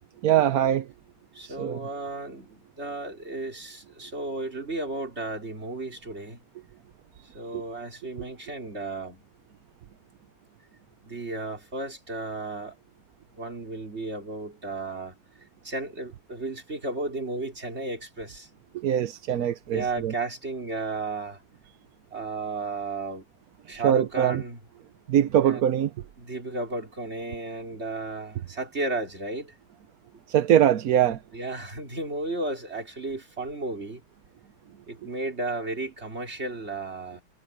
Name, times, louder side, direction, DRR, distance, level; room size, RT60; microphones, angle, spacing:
voice 1, 0.2-0.9 1.4-1.8 7.5-7.6 18.7-20.1 23.7-24.4 25.1-25.9 30.3-31.2, right 10 dB, 60° right, 1.1 m, -22 dB
voice 2, 1.3-6.4 7.3-9.2 11.0-12.8 13.4-15.1 15.6-18.5 19.7-21.4 22.1-23.3 23.7-24.6 25.4-25.6 26.2-29.5 31.3-34.0 34.9-37.2, right 2 dB, 30° right, 4.7 m, -34 dB
omnidirectional pair, 2.1 m